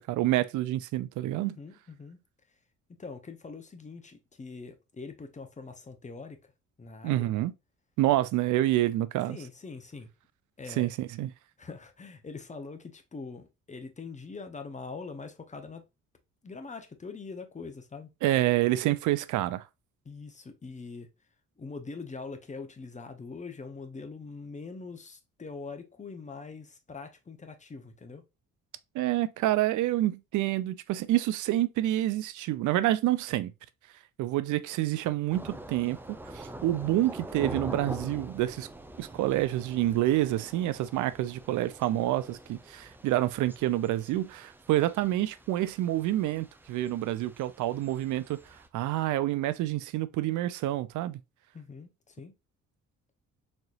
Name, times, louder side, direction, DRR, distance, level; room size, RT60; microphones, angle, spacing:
voice 1, 0.0-1.6 7.0-7.5 8.0-9.4 10.8-11.3 18.2-19.6 28.9-33.5 34.2-38.7 39.0-51.2, right 14 dB, 80° right, 0.5 m, -28 dB
voice 2, 1.4-2.2 2.5-2.6 3.0-6.5 6.8-7.3 9.3-10.1 10.6-10.9 11.6-15.9 16.4-18.1 20.0-21.1 21.6-28.2 51.5-52.3, left 4 dB, 25° left, 0.8 m, -43 dB
Thunder / Rain, 35.3-48.7, right 1 dB, 5° right, 0.5 m, -44 dB
4.2 x 2.9 x 2.5 m
cardioid pair, 90°, 30 cm